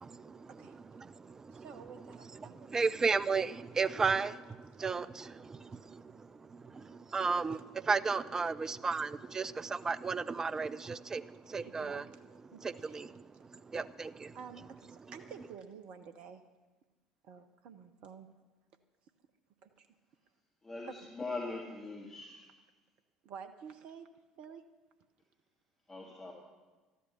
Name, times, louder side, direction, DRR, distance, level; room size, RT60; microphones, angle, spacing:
voice 1, 0.0-12.1 12.6-14.4, right 4 dB, 25° right, 15 dB, 0.5 m, -35 dB
voice 2, 1.5-2.8 5.7-5.8 11.6-12.2 12.5-13.0 14.3-16.4 17.2-18.3 19.6-19.9 23.2-24.1 24.4-24.6, right 6 dB, 55° right, 8 dB, 0.7 m, -50 dB
voice 3, 20.6-22.5 25.9-26.3, left 3 dB, 20° left, -2 dB, 2.1 m, -41 dB
13.0 x 11.0 x 6.6 m, 1.2 s
figure-of-eight pair, 60°, 2 cm